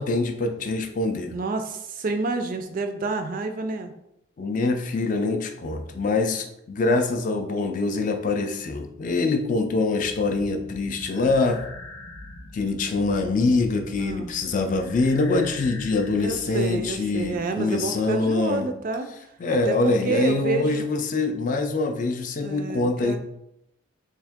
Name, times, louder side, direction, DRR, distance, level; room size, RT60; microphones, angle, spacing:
voice 1, 0.0-1.3 4.4-11.6 12.5-18.7 19.4-23.2, left 3 dB, 40° left, 6 dB, 0.3 m, -24 dB
voice 2, 1.3-3.9 14.0-14.3 16.2-19.1 19.5-20.8 22.4-23.2, right 3 dB, 40° right, 7 dB, 0.3 m, -29 dB
sound 1, 10.0-17.4, left 2 dB, 80° left, 0.8 m, -43 dB
3.5 x 2.7 x 3.5 m, 0.82 s
head